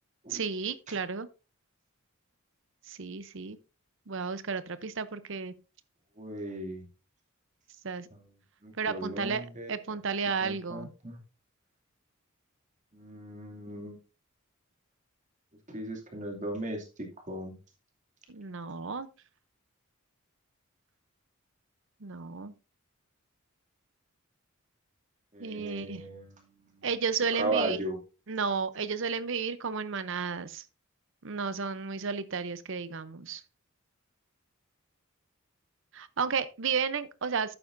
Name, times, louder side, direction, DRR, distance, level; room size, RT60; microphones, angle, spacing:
voice 1, 0.3-1.3 2.9-3.6 4.1-5.5 7.8-8.1 8.8-10.9 18.3-19.1 22.0-22.5 25.4-26.1 26.8-27.8 28.3-30.6 31.2-33.4 35.9-37.5, right 5 dB, 65° right, 0.7 m, -33 dB
voice 2, 6.2-6.8 8.1-8.2 8.6-9.7 10.4-11.2 12.9-14.0 15.7-16.9 17.3-17.6 25.3-26.9 27.4-28.0, right 2 dB, 35° right, 2.6 m, -36 dB
11.5 x 8.8 x 2.6 m
head